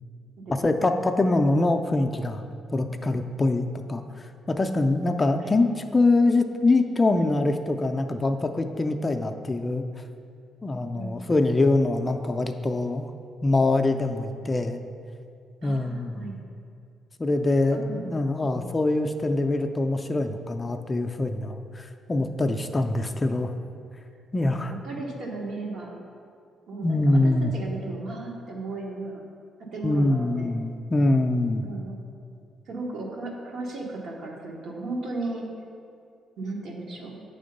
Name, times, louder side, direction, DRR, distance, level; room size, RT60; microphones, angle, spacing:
voice 1, 0.5-2.4 2.7-9.8 10.6-13.1 13.4-14.8 15.6-16.3 17.2-23.5 24.3-24.7 26.8-27.5 29.8-31.7, left 2 dB, 25° left, 6 dB, 0.4 m, -24 dB
voice 2, 10.9-11.3 15.6-16.4 17.7-18.0 18.4-18.8 24.5-26.0 26.7-29.2 29.6-30.5 31.6-32.0 32.7-35.5 36.4-37.2, right 2 dB, 70° right, -1 dB, 1.2 m, -36 dB
7.6 x 3.6 x 5.2 m, 2.3 s
cardioid pair, 90°, 0 cm